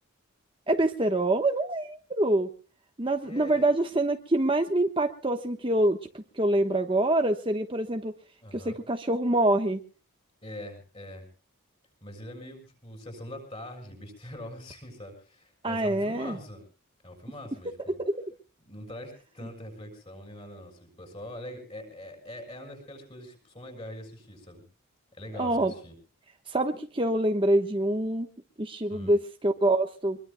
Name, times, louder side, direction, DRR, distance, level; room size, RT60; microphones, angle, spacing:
voice 1, 0.7-2.5 3.0-8.1 8.5-9.8 15.6-16.4 25.4-25.7 26.5-28.3 28.6-30.2, right 1 dB, 25° right, 5 dB, 1.1 m, -25 dB
voice 2, 3.2-3.7 8.4-8.8 10.4-11.3 12.0-16.6 17.0-18.0 18.7-24.6 25.1-25.9 28.9-29.1, left 1 dB, 25° left, 5 dB, 6.4 m, -43 dB
25.0 x 22.0 x 2.2 m, 0.38 s
head